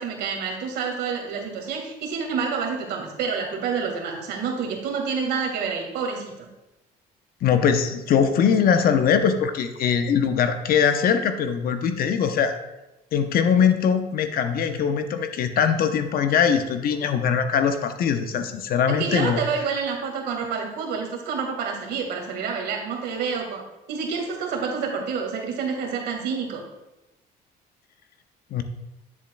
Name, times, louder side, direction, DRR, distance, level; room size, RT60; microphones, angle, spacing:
voice 1, 0.0-6.5 18.9-23.6 23.9-26.6, right 5 dB, 75° right, 1 dB, 1.8 m, -28 dB
voice 2, 7.4-12.6 13.1-19.4 28.5-28.6, left 7 dB, 60° left, 8 dB, 0.7 m, -21 dB
10.0 x 7.2 x 2.2 m, 0.99 s
cardioid pair, 110°, 17 cm